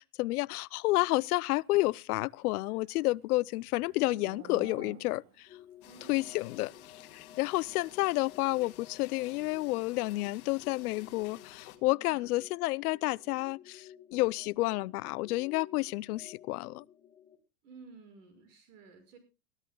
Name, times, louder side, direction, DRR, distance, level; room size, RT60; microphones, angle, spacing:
voice 1, 0.0-5.5 6.1-6.7 7.1-16.8, left 20 dB, 90° left, 0.6 m, -30 dB
Livestock farm animals working animals, 2.2-5.5, right 9 dB, 85° right, 1.6 m, -52 dB
sound 1, 5.5-17.3, left 10 dB, 10° left, 1.7 m, -54 dB
sound 2, 5.8-11.8, left 14 dB, 45° left, 2.1 m, -53 dB
voice 2, 5.8-6.8 12.1-12.3 17.6-19.2, right 4 dB, 60° right, 6.0 m, -54 dB
22.5 x 14.0 x 2.3 m
supercardioid pair, 175°, 43 cm